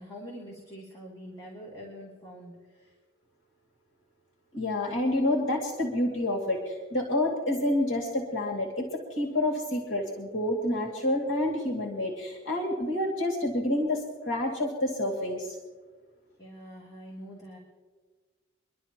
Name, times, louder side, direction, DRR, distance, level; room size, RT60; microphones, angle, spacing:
voice 1, 0.0-2.9 16.4-17.6, equal, 20° left, -5 dB, 2.9 m, -45 dB
voice 2, 4.5-15.6, left 1 dB, 90° left, 0 dB, 2.4 m, -28 dB
25.0 x 12.0 x 3.0 m, 1.4 s
head